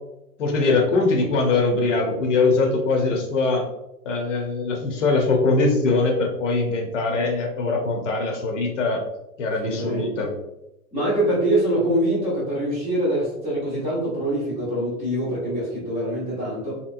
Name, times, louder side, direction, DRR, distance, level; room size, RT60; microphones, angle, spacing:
voice 1, 0.4-3.7 4.0-9.0 9.4-10.3, left 3 dB, 50° left, 2 dB, 0.8 m, -22 dB
voice 2, 9.6-10.2 10.9-16.8, right 1 dB, 15° right, -7 dB, 0.8 m, -24 dB
3.1 x 2.9 x 2.5 m, 0.89 s
hypercardioid pair, 150°, 46 cm